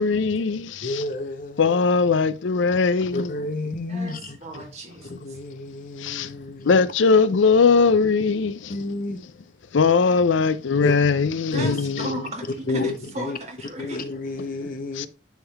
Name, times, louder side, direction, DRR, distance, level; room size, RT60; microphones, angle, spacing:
voice 1, 0.0-1.0 1.6-3.3 6.0-6.3 6.6-8.8 9.7-12.2 14.9-15.1, left 5 dB, 80° left, 0.5 m, -20 dB
voice 2, 0.8-1.8 3.1-4.4 5.1-6.7 8.7-9.2 10.8-10.9 11.5-12.1 12.7-13.4 13.8-15.1, left 2 dB, 45° left, 0.9 m, -30 dB
voice 3, 3.9-5.4 11.5-14.4, right 2 dB, 35° right, 1.8 m, -36 dB
10.0 x 3.8 x 3.4 m
head